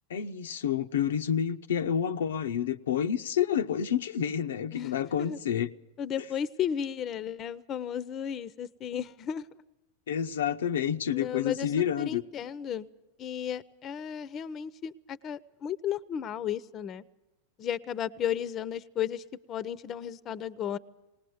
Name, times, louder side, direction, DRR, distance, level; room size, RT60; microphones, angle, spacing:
voice 1, 0.1-5.7 10.1-12.2, left 8 dB, 80° left, 0.7 m, -29 dB
voice 2, 4.7-5.4 6.0-9.5 11.1-11.7 12.0-12.9 13.2-17.0 17.6-20.8, left 9 dB, 35° left, 0.7 m, -34 dB
19.5 x 19.0 x 7.9 m
hypercardioid pair, 105°, 0 cm